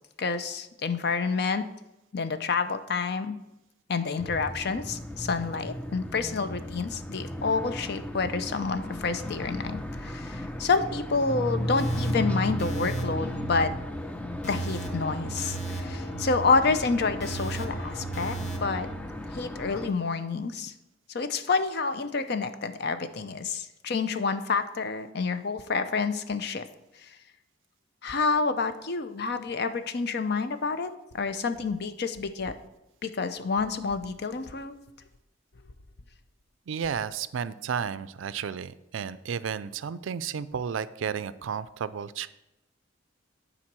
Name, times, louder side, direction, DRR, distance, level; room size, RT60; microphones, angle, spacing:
voice 1, 0.2-1.6 2.1-3.4 3.9-13.7 14.4-18.4 18.6-18.9 19.3-20.7 21.1-26.6 27.0-27.1 28.0-30.9 31.1-32.5 33.0-34.8, left 4 dB, 55° left, 10 dB, 0.6 m, -28 dB
sound 1, 4.2-19.9, left 1 dB, 5° left, 0.4 m, -35 dB
sound 2, 11.8-19.0, right 3 dB, 35° left, 1.0 m, -36 dB
voice 2, 36.7-42.3, right 7 dB, 75° right, 16 dB, 0.4 m, -32 dB
8.9 x 4.0 x 6.0 m, 0.92 s
head